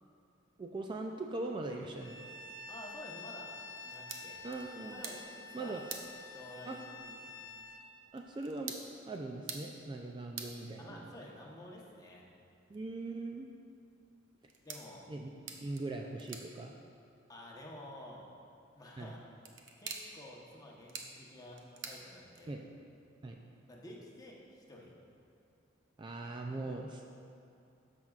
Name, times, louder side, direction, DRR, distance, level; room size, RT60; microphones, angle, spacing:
voice 1, 0.6-2.2 4.4-5.0 5.5-5.8 6.7-6.8 8.1-8.8 9.1-11.2 12.7-13.5 15.1-15.3 15.6-16.7 19.0-19.1 22.5-22.6 23.2-23.4 26.0-27.0, right 2 dB, 25° right, 2 dB, 0.3 m, -40 dB
Bowed string instrument, 2.0-7.9, left 3 dB, 80° left, 0.8 m, -49 dB
voice 2, 2.7-3.5 3.8-4.4 4.9-5.8 6.3-6.7 7.0-7.3 10.8-12.2 14.6-15.0 17.3-18.3 18.7-19.2 19.8-22.6 23.7-24.9 26.3-26.8, left 1 dB, 20° left, -3 dB, 1.0 m, -51 dB
sound 1, 3.7-22.8, right 5 dB, 75° right, 0.7 m, -51 dB
13.0 x 6.0 x 2.4 m, 2.6 s
head